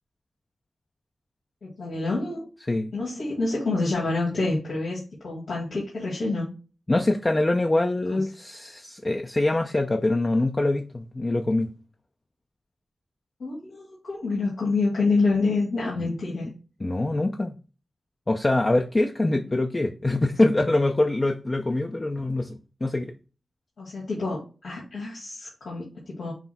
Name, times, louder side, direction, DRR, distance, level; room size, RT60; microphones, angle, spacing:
voice 1, 1.6-2.5 2.9-6.5 8.1-8.2 13.4-16.5 23.8-26.3, left 3 dB, 90° left, -6 dB, 1.5 m, -27 dB
voice 2, 6.9-11.7 16.0-16.1 16.8-17.6 18.3-23.1, left 2 dB, 35° left, 4 dB, 0.5 m, -24 dB
5.8 x 2.0 x 4.1 m, 0.34 s
cardioid pair, 50°, 0 cm